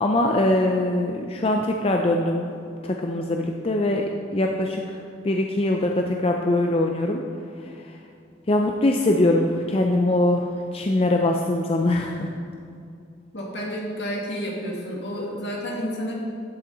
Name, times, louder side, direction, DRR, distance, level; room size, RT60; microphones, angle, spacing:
voice 1, 0.0-2.5 2.8-4.0 4.3-7.2 7.6-8.0 8.5-12.3, left 1 dB, 30° left, 2 dB, 0.5 m, -22 dB
voice 2, 13.3-16.2, equal, 65° left, -2 dB, 2.1 m, -30 dB
12.0 x 7.3 x 3.9 m, 2.4 s
head